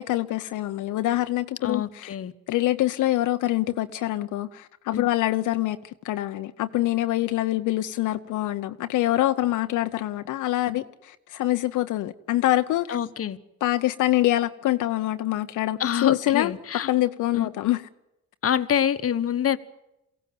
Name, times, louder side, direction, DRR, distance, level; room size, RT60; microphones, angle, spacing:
voice 1, 0.0-2.1 2.5-5.8 6.0-13.0 13.6-16.5 16.9-17.8, left 15 dB, 80° left, 0.8 m, -25 dB
voice 2, 1.6-2.3 4.9-5.0 12.9-13.4 15.8-16.9 17.3-17.5 18.4-19.6, left 9 dB, 50° left, 1.2 m, -26 dB
22.5 x 16.5 x 9.2 m
cardioid pair, 90°, 30 cm